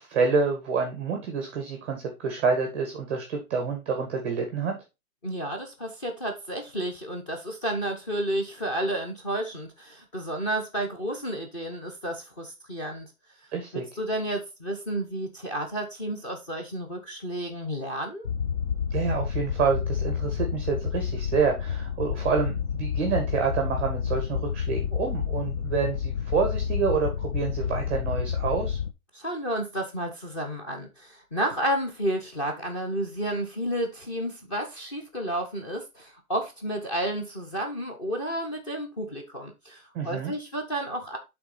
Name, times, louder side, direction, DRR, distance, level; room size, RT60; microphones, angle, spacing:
voice 1, 0.0-4.7 13.5-13.8 18.9-28.8 39.9-40.3, right 5 dB, 10° right, 0.6 m, -28 dB
voice 2, 5.2-13.1 13.7-18.3 29.1-41.2, right 1 dB, 20° left, 0.8 m, -31 dB
sound 1, 18.2-28.9, left 7 dB, 40° left, 0.5 m, -29 dB
7.9 x 3.6 x 4.1 m
hypercardioid pair, 160°, 44 cm